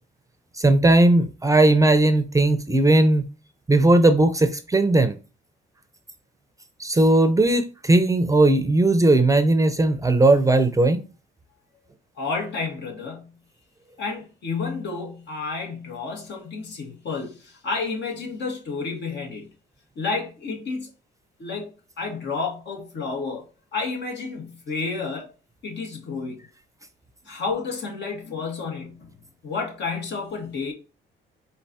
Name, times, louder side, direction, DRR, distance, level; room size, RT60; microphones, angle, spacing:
voice 1, 0.6-3.3 3.7-5.2 6.8-11.0, right 2 dB, 15° right, 0.6 m, -18 dB
voice 2, 12.2-13.4 14.0-19.5 19.9-20.9 21.4-23.5 23.7-25.3 25.6-26.4 27.2-29.1 29.4-30.7, left 4 dB, 65° left, 1.7 m, -31 dB
4.4 x 4.0 x 2.7 m
cardioid pair, 90°, 20 cm